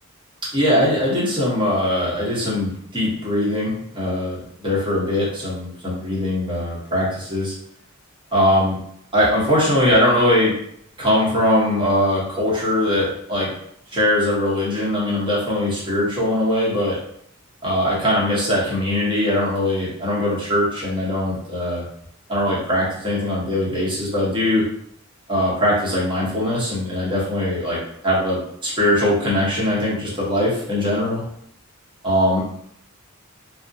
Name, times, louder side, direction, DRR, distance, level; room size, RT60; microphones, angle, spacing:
voice 1, 0.5-7.5 8.3-8.8 9.1-10.5 11.0-13.5 13.9-17.0 17.6-21.8 22.3-24.7 25.3-27.8 28.0-31.2 32.0-32.4, left 1 dB, 25° right, -6 dB, 0.9 m, -21 dB
2.3 x 2.0 x 2.6 m, 0.68 s
head